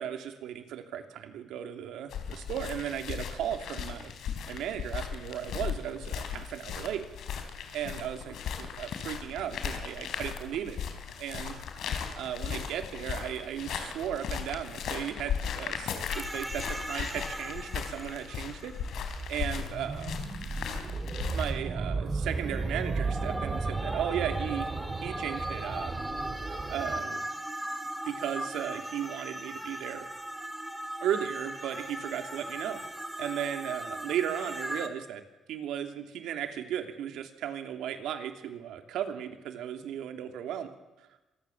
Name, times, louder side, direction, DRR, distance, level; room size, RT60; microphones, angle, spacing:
voice 1, 0.0-4.1 4.5-7.0 7.7-10.8 11.2-11.5 12.2-18.7 19.3-20.2 21.3-24.7 25.0-26.0 26.7-27.3 28.1-30.0 31.0-32.8 33.2-35.2 35.5-40.7 41.0-41.1, right 10 dB, 85° right, 6 dB, 2.9 m, -35 dB
sound 1, 2.1-21.5, left 7 dB, 75° left, 4.0 m, -37 dB
sound 2, 16.1-19.8 22.1-34.9, right 1 dB, 5° right, 3.1 m, -38 dB
sound 3, 18.7-27.0, right 4 dB, 35° right, 2.7 m, -35 dB
26.0 x 20.0 x 7.3 m, 1.0 s
cardioid pair, 90°, 0 cm